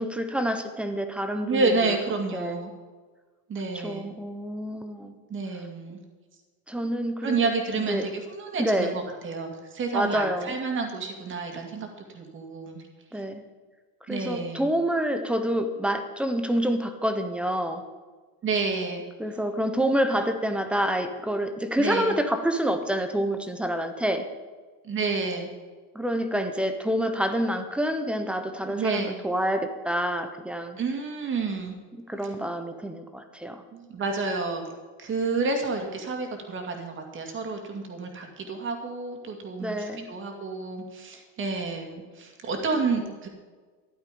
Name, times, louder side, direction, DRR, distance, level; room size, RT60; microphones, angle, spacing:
voice 1, 0.0-1.9 2.3-2.6 3.7-5.1 6.7-7.4 7.9-8.1 8.6-9.0 9.9-10.5 13.1-13.4 14.1-17.8 19.2-24.3 25.9-30.8 32.1-33.6 39.6-40.1 43.0-43.1, equal, 5° right, 7 dB, 0.3 m, -27 dB
voice 2, 1.4-2.7 3.5-4.1 5.3-6.0 7.2-11.9 12.1-12.8 14.1-14.7 18.4-19.0 21.8-22.2 24.8-25.5 28.7-29.2 30.8-31.7 33.7-34.6 35.0-43.3, right 4 dB, 25° right, 3 dB, 2.3 m, -29 dB
13.5 x 11.0 x 5.2 m, 1.4 s
supercardioid pair, 150°, 46 cm